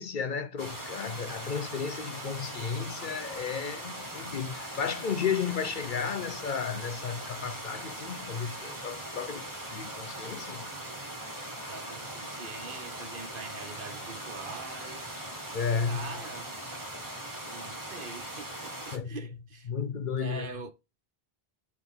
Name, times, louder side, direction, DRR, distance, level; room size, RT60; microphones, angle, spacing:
voice 1, 0.0-9.4 9.7-10.6 15.5-16.1 18.9-19.2 19.7-20.5, left 6 dB, 55° left, 0.7 m, -33 dB
sound 1, 0.6-19.0, right 1 dB, 20° right, 1.6 m, -40 dB
voice 2, 11.7-15.2 15.8-16.6 17.5-19.7 20.2-20.7, right 4 dB, 55° right, 1.2 m, -44 dB
8.5 x 3.8 x 3.6 m
omnidirectional pair, 1.0 m